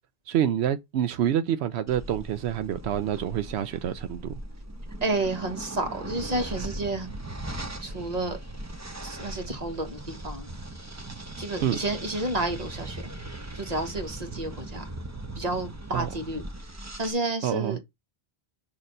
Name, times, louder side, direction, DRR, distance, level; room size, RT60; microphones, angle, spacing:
voice 1, 0.3-4.3 11.6-11.8 15.9-16.1 17.4-17.8, right 10 dB, 85° right, 0.8 m, -27 dB
sound 1, 1.9-17.1, right 1 dB, 20° right, 0.7 m, -39 dB
voice 2, 5.0-7.1 7.8-8.4 9.0-10.5 11.4-13.2 13.5-14.9 15.3-17.8, right 2 dB, 40° right, 1.3 m, -31 dB
6.5 x 2.9 x 5.3 m
omnidirectional pair, 1.1 m